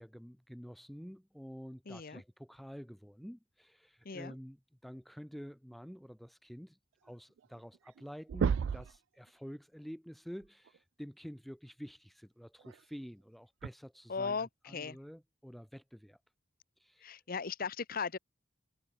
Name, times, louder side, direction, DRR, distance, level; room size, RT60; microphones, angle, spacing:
voice 1, 0.0-16.2 16.8-17.2, equal, ahead, 0.7 m, -49 dB
voice 2, 1.9-2.2 4.0-4.3 14.1-15.0 17.0-18.2, left 5 dB, 50° left, 0.9 m, -37 dB
sound 1, 7.4-7.5 7.8-8.0 8.3-9.0 10.7-10.8 12.6-12.7 13.6-13.7, right 6 dB, 75° right, 0.3 m, -31 dB
head